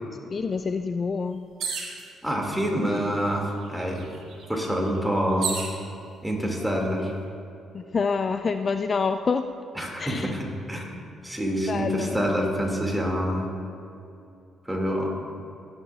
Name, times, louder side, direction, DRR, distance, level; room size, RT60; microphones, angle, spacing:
voice 1, 0.3-1.4 7.7-9.4 10.0-10.3 11.7-12.2, left 5 dB, 40° left, 8 dB, 0.3 m, -27 dB
sound 1, 1.6-2.0 3.0-3.1 3.4-5.8 6.5-7.0, right 5 dB, 75° right, 2.2 m, -33 dB
voice 2, 2.2-4.1 4.5-5.5 6.2-7.2 9.8-10.9 11.2-13.5 14.7-15.2, equal, 5° right, -1 dB, 2.2 m, -26 dB
17.0 x 10.5 x 2.4 m, 2.7 s
cardioid pair, 90°, 0 cm